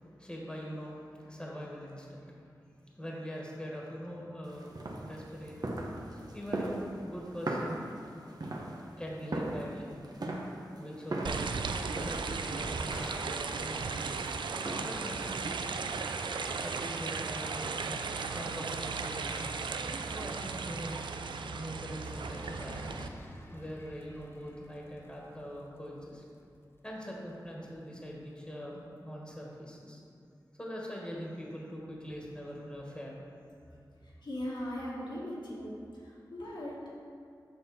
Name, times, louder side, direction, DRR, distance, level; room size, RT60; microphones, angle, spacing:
voice 1, 0.0-2.2 3.0-4.7 5.0-5.5 6.3-6.7 7.0-7.8 9.0-9.9 10.8-11.7 12.0-14.3 14.8-15.8 16.6-18.0 18.3-21.0 21.5-23.1 23.5-26.2 26.8-30.0 30.6-33.1, equal, 10° left, -3 dB, 1.5 m, -42 dB
sound 1, 4.4-15.1, right 1 dB, 55° right, 0.9 m, -39 dB
sound 2, 11.2-23.1, right 4 dB, 85° right, 0.3 m, -36 dB
Fire, 21.8-28.2 28.8-28.9, left 1 dB, 30° left, 0.9 m, -52 dB
voice 2, 34.0-35.8 36.0-37.0, left 1 dB, 80° left, -8 dB, 1.9 m, -39 dB
6.8 x 5.7 x 4.2 m, 2.4 s
cardioid pair, 50°, 8 cm